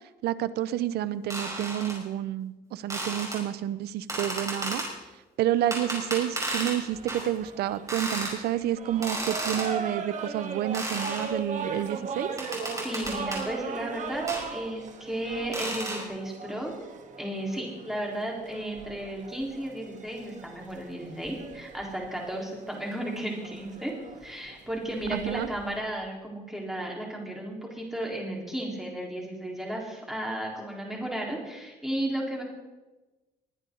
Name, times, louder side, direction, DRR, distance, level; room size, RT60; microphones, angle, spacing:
voice 1, 0.2-4.8 5.4-12.3 25.1-25.5, right 12 dB, 70° right, 16 dB, 0.7 m, -29 dB
sound 1, 1.3-2.0 2.9-3.4 4.1-4.9 5.7-6.8 7.1-7.3 7.9-8.3 9.0-9.7 10.7-11.3 12.4-13.4 14.3-14.4 15.5-16.0, right 2 dB, 20° right, 5.4 m, -33 dB
sound 2, 6.9-25.8, right 5 dB, 45° right, 1.8 m, -39 dB
voice 2, 12.8-14.2 14.5-16.7 17.2-23.9 24.2-32.4, right 1 dB, ahead, -2 dB, 4.1 m, -34 dB
21.0 x 9.9 x 3.9 m, 1.1 s
cardioid pair, 110°, 17 cm